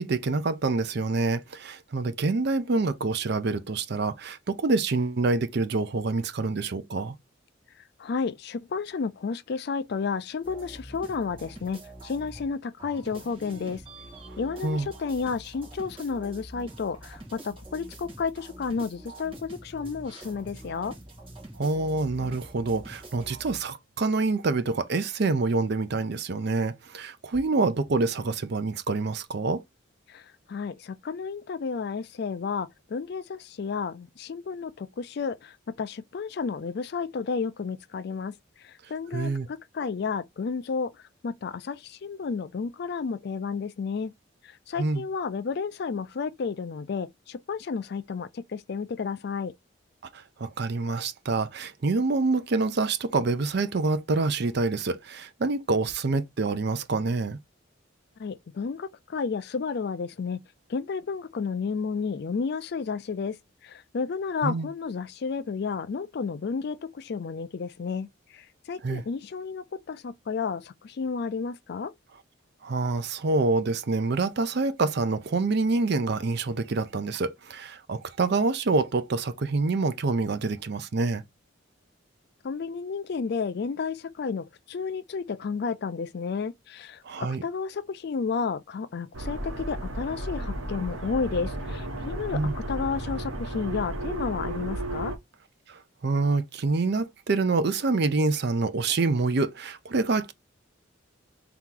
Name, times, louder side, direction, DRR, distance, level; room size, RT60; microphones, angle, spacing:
voice 1, 0.0-7.2 14.6-14.9 21.6-29.6 39.1-39.5 44.8-45.1 50.1-57.4 64.4-64.7 68.8-69.0 72.6-81.2 87.0-87.4 92.3-92.5 95.7-100.3, right 3 dB, 55° right, 0.5 m, -26 dB
voice 2, 8.0-13.8 14.4-20.9 30.1-38.3 38.6-40.9 41.2-44.1 44.4-49.5 58.2-60.4 60.7-63.4 63.6-68.1 68.3-71.9 82.4-95.1, left 5 dB, 50° left, 0.4 m, -32 dB
sound 1, 10.4-12.5 12.8-23.6, right 1 dB, 25° right, 1.7 m, -45 dB
sound 2, 89.1-95.2, right 1 dB, 80° right, 1.1 m, -33 dB
3.5 x 2.9 x 3.7 m
head